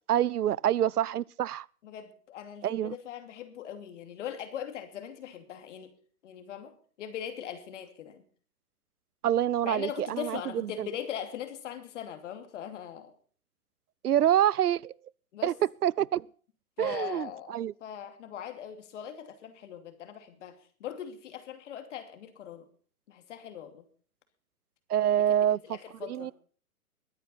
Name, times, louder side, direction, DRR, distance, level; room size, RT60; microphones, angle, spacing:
voice 1, 0.1-1.7 2.6-3.0 9.2-10.9 14.0-14.9 15.4-16.3 16.8-17.7 24.9-25.6 26.0-26.3, right 11 dB, 85° right, 0.5 m, -26 dB
voice 2, 1.8-5.9 6.2-8.2 9.6-13.1 15.3-15.5 16.8-22.7 23.1-23.8 25.3-26.3, left 9 dB, 50° left, 2.8 m, -40 dB
22.0 x 9.3 x 4.2 m
hypercardioid pair, 125°, 45 cm